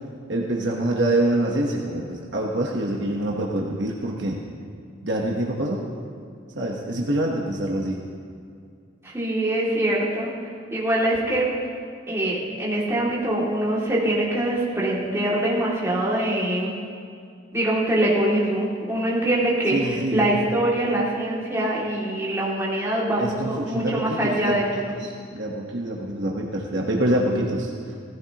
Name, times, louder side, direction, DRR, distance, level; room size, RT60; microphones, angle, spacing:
voice 1, 0.3-4.4 5.0-5.8 6.5-8.0 19.7-20.4 23.2-24.6 25.0-28.0, right 1 dB, 60° right, -2 dB, 1.2 m, -25 dB
voice 2, 9.0-10.3 10.7-11.5 12.1-16.7 17.5-24.9, right 1 dB, 15° right, -6 dB, 2.5 m, -23 dB
17.0 x 15.5 x 3.0 m, 2.3 s
head